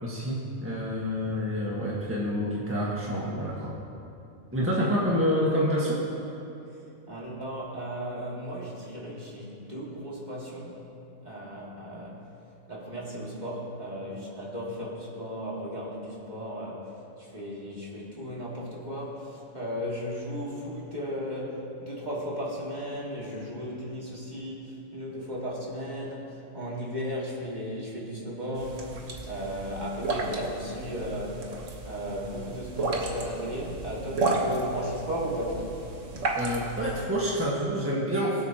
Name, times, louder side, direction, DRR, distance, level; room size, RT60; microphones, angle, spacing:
voice 1, 0.0-3.7 4.5-6.0 36.4-38.4, equal, 10° right, -5 dB, 1.5 m, -28 dB
voice 2, 4.6-5.0 7.1-10.8 11.2-12.2 12.7-16.9 17.2-29.0 29.3-31.5 31.8-35.8, equal, 35° right, -5 dB, 2.3 m, -35 dB
sound 1, 28.5-37.0, right 3 dB, 65° right, 1.6 m, -33 dB
23.5 x 8.2 x 3.0 m, 2.8 s
omnidirectional pair, 1.4 m